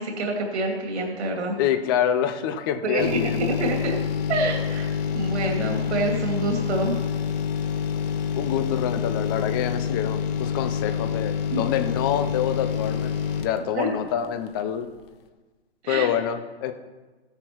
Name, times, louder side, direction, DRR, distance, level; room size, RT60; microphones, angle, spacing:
voice 1, 0.0-1.6 2.8-4.0 4.3-4.9 5.1-7.0 11.5-11.6 13.7-13.9 15.8-16.1, right 2 dB, 75° right, 0 dB, 2.4 m, -26 dB
voice 2, 1.6-3.4 8.4-14.9 15.9-16.7, left 9 dB, 20° left, 10 dB, 0.5 m, -26 dB
sound 1, 3.0-14.6 15.0-15.1, left 7 dB, 55° left, 1.2 m, -27 dB
15.5 x 10.5 x 3.0 m, 1.3 s
hypercardioid pair, 150°, 34 cm